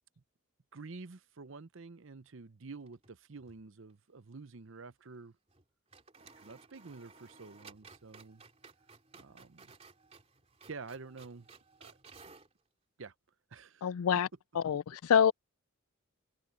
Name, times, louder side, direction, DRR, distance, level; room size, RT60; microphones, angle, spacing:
voice 1, 0.7-5.4 6.4-8.4 9.1-9.7 10.7-11.5 11.8-12.0 13.0-13.1 13.5-13.9, right 4 dB, 60° right, 0.7 m, -49 dB
sound 1, 2.8-3.6 3.9-4.0 5.5-5.6 5.9-12.5, right 4 dB, 30° right, 3.0 m, -57 dB
voice 2, 13.8-14.3 14.5-15.3, left 8 dB, 80° left, 0.4 m, -26 dB
head